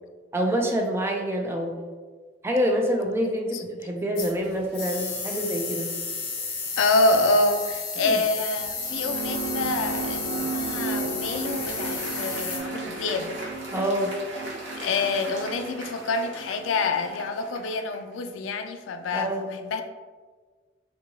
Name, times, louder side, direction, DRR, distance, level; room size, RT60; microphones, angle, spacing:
voice 1, 0.3-1.8 2.4-5.9 8.0-8.2 13.7-14.1 19.1-19.6, equal, 15° right, 1 dB, 0.3 m, -26 dB
sound 1, 4.2-12.6, left 4 dB, 55° left, 0.8 m, -33 dB
voice 2, 6.8-13.4 14.8-19.3 19.6-19.8, left 3 dB, 85° left, 7 dB, 0.3 m, -26 dB
sound 2, 8.6-17.3, right 3 dB, 85° right, 0.4 m, -35 dB
Applause, 10.8-18.1, right 2 dB, 65° right, 0.9 m, -40 dB
3.5 x 2.8 x 2.7 m, 1.5 s
head